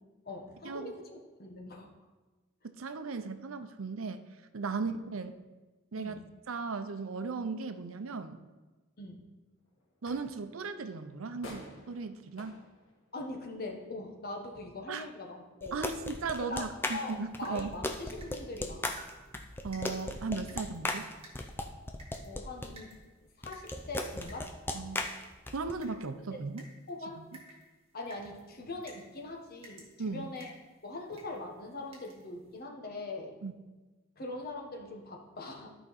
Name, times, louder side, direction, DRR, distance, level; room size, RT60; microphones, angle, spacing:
voice 1, 0.2-1.9 4.7-4.9 6.0-6.3 9.0-9.3 13.1-15.8 16.5-19.0 22.2-22.9 23.4-24.5 26.3-26.5 26.9-27.3 27.9-30.5 30.8-33.4 34.2-35.7, left 2 dB, 50° left, 1 dB, 1.3 m, -42 dB
voice 2, 2.8-4.2 4.5-5.4 5.9-6.2 6.5-8.4 10.0-12.5 14.9-15.1 15.7-17.7 19.6-21.1 24.7-25.0 25.5-26.6 27.2-27.3 30.0-30.3 33.4-33.5, right 4 dB, 90° right, 9 dB, 0.6 m, -37 dB
sound 1, 9.6-21.6, left 1 dB, 80° left, 1.8 m, -57 dB
sound 2, 15.6-22.7 23.4-25.7, left 2 dB, 10° left, 0.5 m, -37 dB
sound 3, 17.3-32.6, right 1 dB, 30° right, 1.8 m, -58 dB
13.0 x 5.0 x 4.2 m, 1.2 s
head